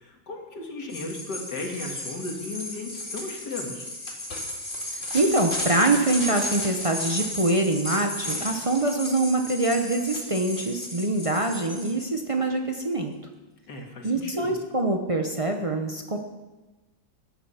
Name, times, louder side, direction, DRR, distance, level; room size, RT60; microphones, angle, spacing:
voice 1, 0.0-3.9 13.7-14.6, left 2 dB, 60° left, 2 dB, 2.4 m, -36 dB
sound 1, 0.9-12.1, left 1 dB, 25° left, 2.5 m, -34 dB
voice 2, 5.1-13.1 14.0-16.2, right 2 dB, 45° right, 3 dB, 0.4 m, -24 dB
15.0 x 10.0 x 5.7 m, 1.2 s
omnidirectional pair, 2.1 m